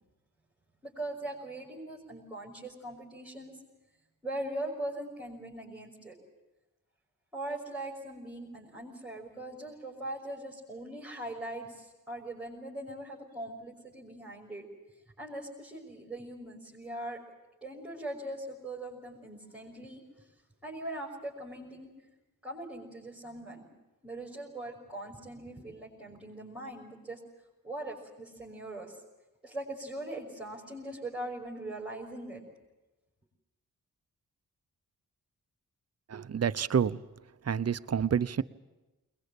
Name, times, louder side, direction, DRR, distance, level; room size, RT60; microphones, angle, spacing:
voice 1, 0.8-3.5 4.2-6.2 7.3-14.6 15.2-17.2 17.6-20.0 20.6-21.9 22.4-23.7 24.0-27.2 27.6-29.0 29.4-32.4, right 1 dB, 5° right, -5 dB, 5.9 m, -41 dB
voice 2, 36.1-37.0 37.4-38.4, right 7 dB, 45° right, 13 dB, 0.8 m, -28 dB
22.0 x 20.5 x 8.6 m, 1.1 s
cardioid pair, 60°, 34 cm